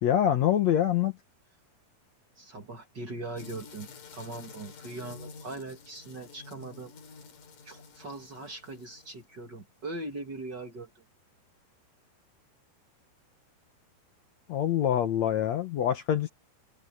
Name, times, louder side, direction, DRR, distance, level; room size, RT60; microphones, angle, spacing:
voice 1, 0.0-1.1 14.5-16.3, left 10 dB, 75° left, 1.6 m, -25 dB
voice 2, 2.4-6.9 7.7-11.0, right 2 dB, 35° right, 2.2 m, -40 dB
sound 1, 3.3-9.4, left 5 dB, 55° left, 4.4 m, -49 dB
omnidirectional pair, 4.7 m